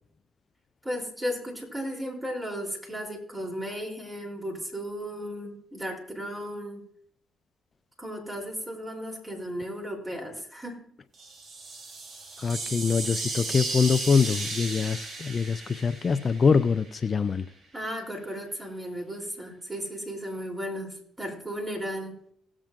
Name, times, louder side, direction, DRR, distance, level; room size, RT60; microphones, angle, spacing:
voice 1, 0.8-6.8 8.0-10.8 17.7-22.2, equal, 20° right, 1 dB, 3.4 m, -35 dB
sound 1, 11.1-17.0, right 3 dB, 50° right, 1.4 m, -35 dB
voice 2, 12.4-17.5, left 5 dB, 45° left, 12 dB, 0.4 m, -24 dB
18.0 x 7.4 x 2.6 m, 0.69 s
hypercardioid pair, 50°, 0 cm